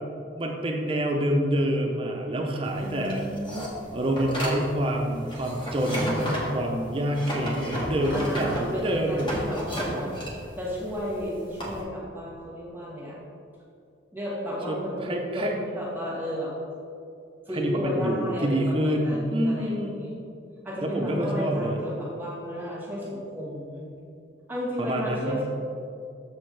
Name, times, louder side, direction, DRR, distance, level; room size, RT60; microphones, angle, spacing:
voice 1, 0.3-3.2 3.9-9.3 14.7-15.5 17.5-20.0 20.8-21.8 24.8-25.4, right 1 dB, 30° right, 1 dB, 0.6 m, -27 dB
sound 1, 2.6-11.8, equal, 25° left, 1.2 m, -33 dB
voice 2, 2.8-4.0 8.1-10.1 10.6-13.2 14.1-16.5 17.5-20.2 20.6-23.9 24.5-25.4, equal, 10° right, -6 dB, 1.4 m, -33 dB
7.0 x 6.0 x 3.2 m, 2.5 s
head